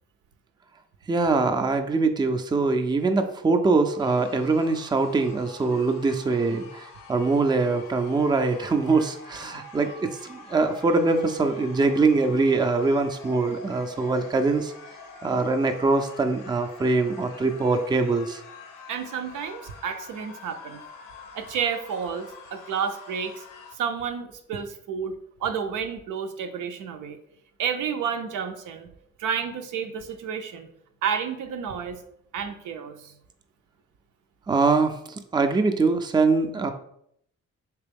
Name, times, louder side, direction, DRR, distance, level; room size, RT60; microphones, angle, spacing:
voice 1, 1.1-14.7 15.2-18.4 34.5-36.7, right 3 dB, 15° right, 7 dB, 0.4 m, -23 dB
sound 1, 4.0-23.8, left 4 dB, 80° left, 0.6 m, -46 dB
voice 2, 18.9-20.8 21.3-23.4 23.7-27.2 27.6-28.9 29.2-30.7 31.0-32.0 32.3-33.1, right 7 dB, 75° right, 7 dB, 0.5 m, -31 dB
3.3 x 3.0 x 3.4 m, 0.72 s
supercardioid pair, 55°, 31 cm